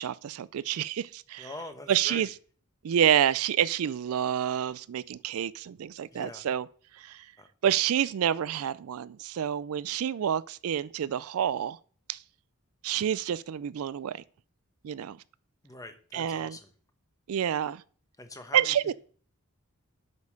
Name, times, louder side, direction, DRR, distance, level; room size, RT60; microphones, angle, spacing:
voice 1, 0.0-1.5 1.9-2.3 2.8-6.6 7.0-7.2 7.6-11.8 12.1-12.2 12.8-14.2 14.8-15.2 16.1-16.5 17.3-17.8 18.5-18.9, right 9 dB, 70° right, 0.4 m, -28 dB
voice 2, 1.4-2.3 6.1-6.4 7.4-7.5 15.6-16.7 18.2-18.9, left 2 dB, 15° left, 1.0 m, -44 dB
8.1 x 5.3 x 6.5 m
head